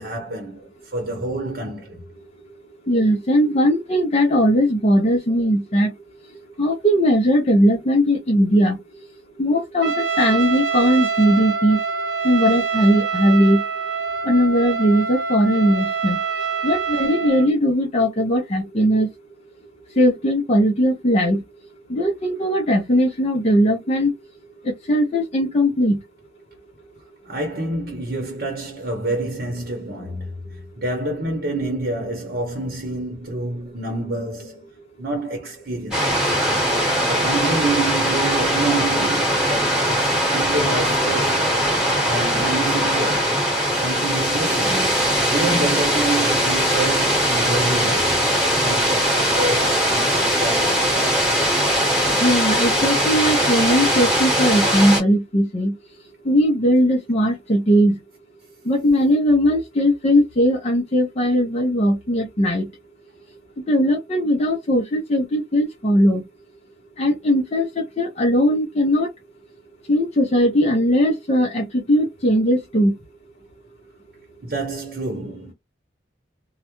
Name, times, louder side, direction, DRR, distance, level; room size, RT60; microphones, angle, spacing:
voice 1, 0.0-2.0 27.2-34.7 35.0-36.4 37.1-41.5 42.1-43.3 43.7-48.2 48.6-51.1 74.4-75.5, right 2 dB, 55° right, 0.8 m, -28 dB
voice 2, 2.9-5.9 6.6-8.8 9.4-11.8 12.2-13.6 14.2-16.2 16.6-19.1 20.0-21.4 21.9-24.1 24.6-26.0 52.2-55.7 56.3-58.0 58.7-62.7 63.7-66.2 67.0-69.1 69.9-72.9, equal, 35° left, 0.5 m, -19 dB
Trumpet, 9.8-17.5, right 5 dB, 85° right, 0.7 m, -25 dB
sound 1, 35.9-55.0, equal, 5° right, 1.1 m, -20 dB
2.3 x 2.1 x 2.9 m
head